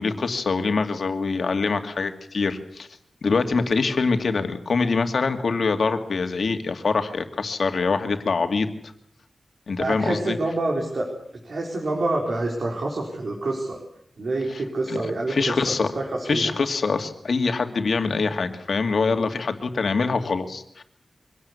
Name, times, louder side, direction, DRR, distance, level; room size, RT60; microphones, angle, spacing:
voice 1, 0.0-2.9 3.2-8.7 9.7-10.4 14.5-14.6 14.9-15.0 15.3-15.9 16.3-20.8, left 4 dB, 70° left, 6 dB, 2.4 m, -24 dB
voice 2, 9.8-11.1 11.4-13.8 14.2-16.4, right 2 dB, 65° right, 0 dB, 4.5 m, -27 dB
24.5 x 18.0 x 8.4 m, 0.72 s
wide cardioid pair, 130°, 0 cm